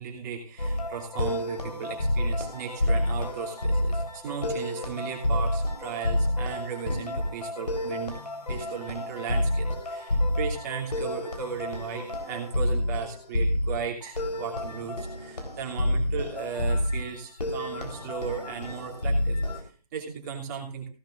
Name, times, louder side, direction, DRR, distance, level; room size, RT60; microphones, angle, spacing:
voice 1, 0.0-8.2 8.5-20.9, right 6 dB, 30° right, 0 dB, 2.8 m, -36 dB
sound 1, 0.6-19.6, left 1 dB, 85° left, 3.7 m, -29 dB
16.5 x 11.5 x 2.5 m, 0.38 s
figure-of-eight pair, 150°, 20 cm